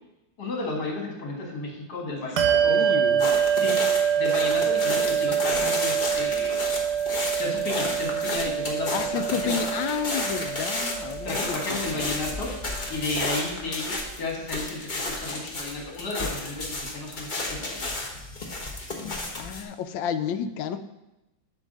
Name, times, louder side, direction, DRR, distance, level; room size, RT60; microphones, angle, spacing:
voice 1, 0.4-3.8 4.2-6.7 7.3-9.6 11.2-12.5 12.9-17.9, left 2 dB, 60° left, 0 dB, 2.1 m, -33 dB
voice 2, 2.2-3.3 8.9-12.2 19.4-20.8, left 8 dB, 90° left, 10 dB, 1.3 m, -31 dB
Bell, 2.4-12.4, right 8 dB, 70° right, 1.2 m, -25 dB
sound 1, 3.2-19.6, left 2 dB, 35° left, 0.9 m, -32 dB
8.1 x 3.3 x 6.5 m, 0.96 s
omnidirectional pair, 2.0 m